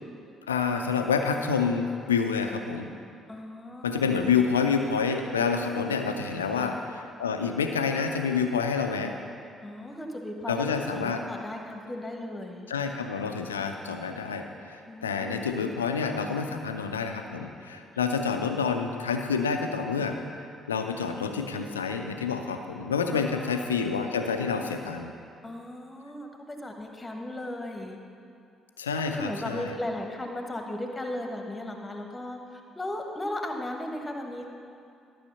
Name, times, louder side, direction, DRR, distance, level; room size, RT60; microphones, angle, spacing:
voice 1, 0.5-2.9 3.8-9.2 10.5-11.2 12.7-20.2 20.7-25.1 28.8-29.7, left 5 dB, 80° left, 5 dB, 0.5 m, -28 dB
voice 2, 3.3-4.2 6.5-6.7 9.6-12.7 14.9-15.6 23.1-23.9 25.4-28.0 29.1-34.5, left 1 dB, 15° left, 3 dB, 1.3 m, -36 dB
12.5 x 6.2 x 5.5 m, 2.5 s
figure-of-eight pair, 45°, 0 cm